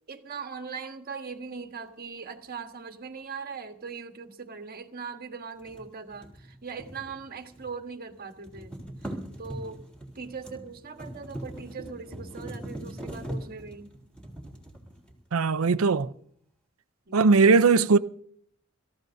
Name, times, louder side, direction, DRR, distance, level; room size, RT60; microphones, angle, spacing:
voice 1, 0.0-9.8 10.1-14.0 17.1-17.4, right 5 dB, 45° right, 1.4 m, -40 dB
sound 1, 5.6-7.8 8.1-15.4, right 1 dB, 5° left, 3.6 m, -41 dB
voice 2, 15.3-16.1 17.1-18.0, right 4 dB, 80° right, 0.6 m, -19 dB
26.5 x 14.5 x 2.7 m
head